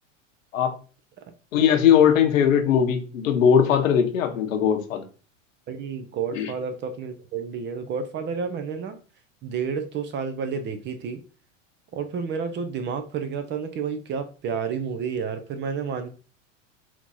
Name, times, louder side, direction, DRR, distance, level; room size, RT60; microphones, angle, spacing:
voice 1, 1.5-5.0 6.3-6.5, left 8 dB, 85° left, 5 dB, 1.2 m, -19 dB
voice 2, 5.7-9.0 9.4-11.2 11.9-16.1, right 6 dB, 30° right, 8 dB, 0.7 m, -30 dB
4.3 x 2.9 x 4.1 m, 0.37 s
supercardioid pair, 125°, 38 cm